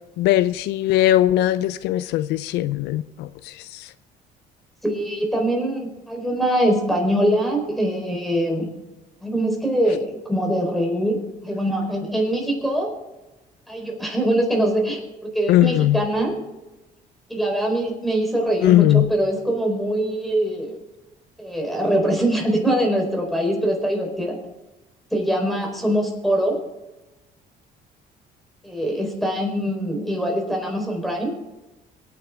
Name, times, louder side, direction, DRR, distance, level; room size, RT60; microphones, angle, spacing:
voice 1, 0.2-3.3 15.5-16.0 18.6-19.0, left 14 dB, 85° left, 0.5 m, -19 dB
voice 2, 4.8-8.7 9.2-12.9 13.7-16.4 17.3-20.8 21.4-24.4 25.1-26.6 28.6-31.4, right 1 dB, ahead, 4.3 m, -23 dB
23.5 x 9.4 x 3.7 m
cardioid pair, 110°, 17 cm